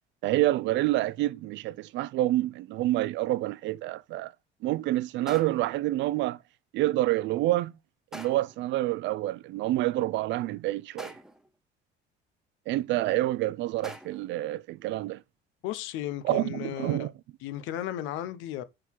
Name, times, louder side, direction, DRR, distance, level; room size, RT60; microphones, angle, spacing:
voice 1, 0.2-4.3 4.6-6.4 6.7-7.7 8.1-11.2 12.7-15.2 16.2-17.1, right 16 dB, 70° right, 0.5 m, -28 dB
sound 1, 5.3-5.8 8.1-8.6 11.0-11.5 13.8-14.3, equal, 5° right, 1.0 m, -44 dB
voice 2, 15.6-17.1 17.4-18.6, left 12 dB, 85° left, 0.9 m, -34 dB
9.9 x 3.8 x 4.6 m
cardioid pair, 110°, 19 cm